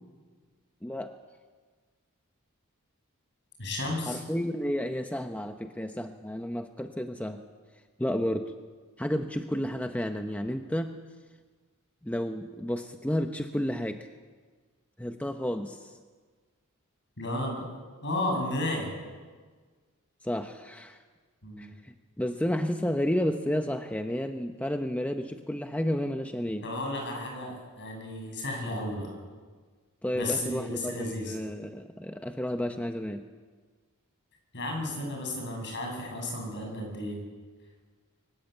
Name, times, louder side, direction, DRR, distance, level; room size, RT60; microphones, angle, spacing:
voice 1, 0.8-1.1 4.1-7.4 8.0-8.5 9.0-11.0 12.0-14.1 15.0-16.0 20.2-21.0 21.6-26.7 30.0-33.2, equal, 5° left, 6 dB, 0.8 m, -31 dB
voice 2, 3.6-4.2 17.2-17.6 18.0-18.9 21.4-21.7 26.6-29.1 30.1-31.3 34.5-37.2, left 1 dB, 55° left, 1 dB, 7.9 m, -33 dB
23.5 x 19.5 x 8.2 m, 1.5 s
head